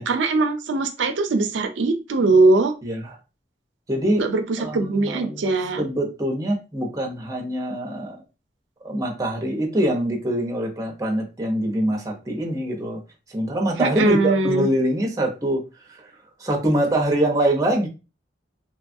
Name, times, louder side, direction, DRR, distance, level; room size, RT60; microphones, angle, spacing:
voice 1, 0.1-2.7 4.2-5.8 13.8-14.7, right 3 dB, 85° right, 6 dB, 0.5 m, -21 dB
voice 2, 2.8-3.1 3.9-4.2 4.6-8.2 8.8-13.0 13.3-15.6 15.9-16.1 16.4-17.9, right 1 dB, 20° right, 0 dB, 0.7 m, -24 dB
2.9 x 2.3 x 2.6 m, 0.29 s
head